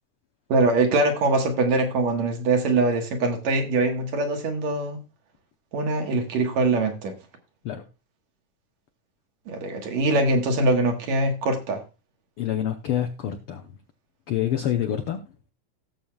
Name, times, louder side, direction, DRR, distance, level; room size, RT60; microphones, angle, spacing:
voice 1, 0.5-5.0 5.7-7.1 9.5-11.8, right 2 dB, 65° right, 4 dB, 2.5 m, -23 dB
voice 2, 12.4-13.6 14.3-15.2, left 10 dB, 85° left, 5 dB, 1.2 m, -26 dB
17.5 x 7.2 x 2.3 m, 0.29 s
omnidirectional pair, 3.5 m